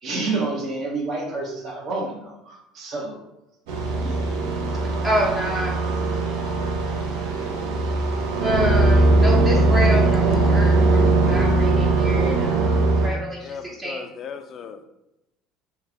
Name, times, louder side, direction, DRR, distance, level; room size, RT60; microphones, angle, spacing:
voice 1, 0.0-3.2 4.0-4.3 4.8-5.0, right 3 dB, 50° right, -1 dB, 0.9 m, -29 dB
sound 1, 3.7-13.1, right 2 dB, 75° right, 0.7 m, -20 dB
voice 2, 5.0-5.8 8.4-12.8 13.0-14.0, equal, 25° right, -3 dB, 0.7 m, -27 dB
voice 3, 13.4-14.8, left 6 dB, 45° left, 8 dB, 0.4 m, -37 dB
3.3 x 2.2 x 3.5 m, 0.91 s
hypercardioid pair, 80°, 0 cm